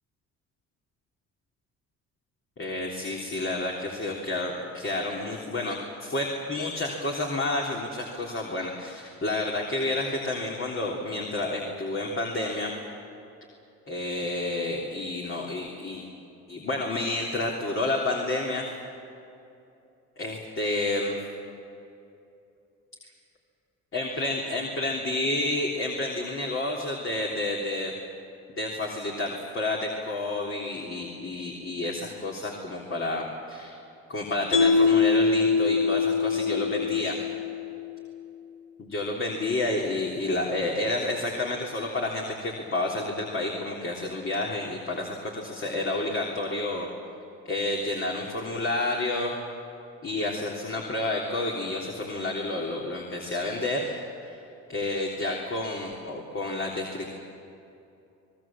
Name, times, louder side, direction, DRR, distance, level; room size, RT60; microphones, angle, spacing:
voice 1, 2.6-12.7 13.9-16.0 16.5-18.7 20.2-21.2 23.9-27.9 28.5-33.8 34.1-37.2 38.8-46.9 47.5-49.4 50.0-54.0 54.2-54.4 54.7-57.1, left 2 dB, 40° left, -1 dB, 3.4 m, -30 dB
Mallet percussion, 34.5-37.8, left 4 dB, 65° left, 6.6 m, -23 dB
26.5 x 20.0 x 7.5 m, 2.7 s
supercardioid pair, 65°, 32 cm